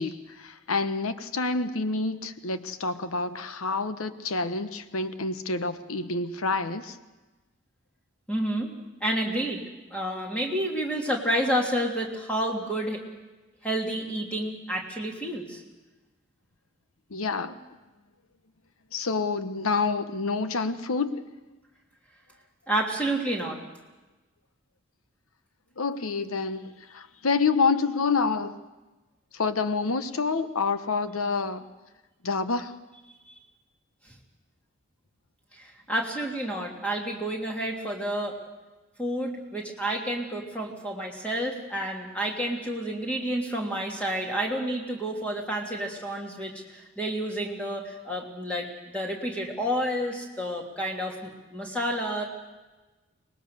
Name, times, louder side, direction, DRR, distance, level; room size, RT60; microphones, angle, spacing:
voice 1, 0.0-7.0 17.1-17.6 18.9-21.2 25.8-28.6 29.3-31.7 32.2-32.8, left 4 dB, 90° left, 11 dB, 1.1 m, -28 dB
voice 2, 8.3-8.7 9.0-9.6 9.9-13.0 13.6-15.6 22.7-23.6 33.3-33.4 35.5-38.4 39.0-52.2, right 1 dB, 5° left, -1 dB, 2.9 m, -30 dB
24.5 x 19.5 x 6.7 m, 1.1 s
head